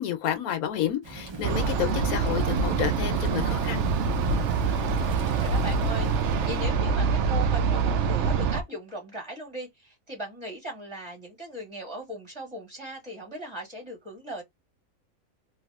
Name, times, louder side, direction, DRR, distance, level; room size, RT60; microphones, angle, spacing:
voice 1, 0.0-3.8, left 10 dB, 85° left, 1.1 m, -30 dB
Thunder / Rain, 1.0-6.8, right 3 dB, 40° right, 0.4 m, -39 dB
sound 1, 1.4-8.6, right 5 dB, 65° right, 0.8 m, -25 dB
voice 2, 4.7-14.4, right 1 dB, 20° right, 1.9 m, -38 dB
3.3 x 2.7 x 2.3 m
omnidirectional pair, 1.5 m